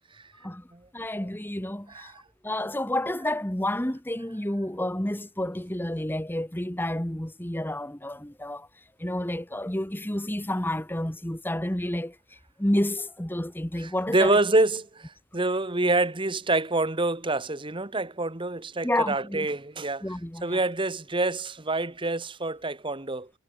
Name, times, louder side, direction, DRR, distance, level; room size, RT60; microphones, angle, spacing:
voice 1, 0.9-2.1 2.4-8.7 9.0-12.2 12.6-14.3 18.8-19.5 20.0-20.6, left 1 dB, 10° left, 1.2 m, -30 dB
voice 2, 1.9-2.2 13.8-20.1 20.4-23.3, right 2 dB, 20° right, 1.2 m, -27 dB
head